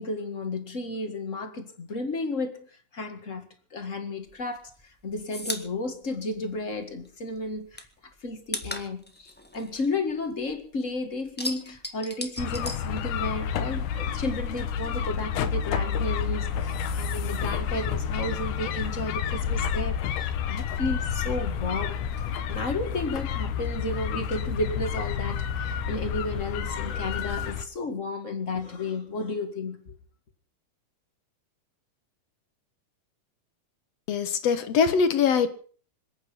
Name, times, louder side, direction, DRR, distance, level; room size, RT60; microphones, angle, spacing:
voice 1, 0.0-7.9 8.2-22.0 22.5-29.9, left 2 dB, 30° left, 1.5 m, -33 dB
sound 1, 4.3-7.1 7.4-10.7 11.0-13.6 13.8-14.9, left 1 dB, 15° left, 0.3 m, -38 dB
sound 2, 12.4-27.6, left 7 dB, 80° left, 2.6 m, -30 dB
voice 2, 34.1-35.5, left 6 dB, 60° left, 2.2 m, -22 dB
26.5 x 9.1 x 5.5 m
omnidirectional pair, 3.6 m